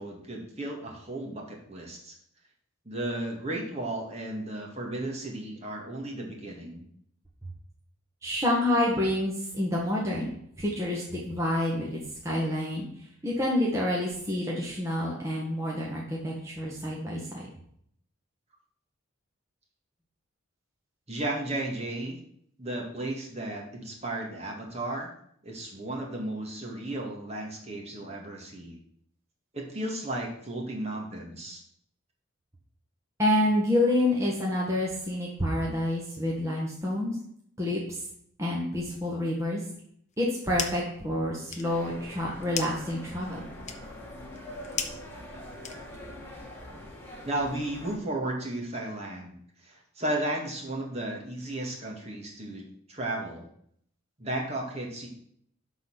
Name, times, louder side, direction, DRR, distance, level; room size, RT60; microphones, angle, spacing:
voice 1, 0.0-2.2 2.9-6.9 21.1-22.2 22.6-25.1 25.4-28.8 29.5-31.6 47.2-49.4 49.6-52.6 52.9-53.5 54.2-55.1, right 1 dB, 30° right, -1 dB, 1.9 m, -34 dB
voice 2, 8.2-10.3 10.6-12.0 12.2-12.8 13.2-17.5 33.2-37.2 37.6-38.0 38.4-39.6 40.2-43.4, left 1 dB, 15° right, -4 dB, 1.6 m, -28 dB
sound 1, 40.1-41.0 41.3-46.2, left 7 dB, 35° left, 0.8 m, -38 dB
sound 2, 41.6-48.0, left 1 dB, 10° left, 2.0 m, -44 dB
12.0 x 4.2 x 6.2 m, 0.67 s
head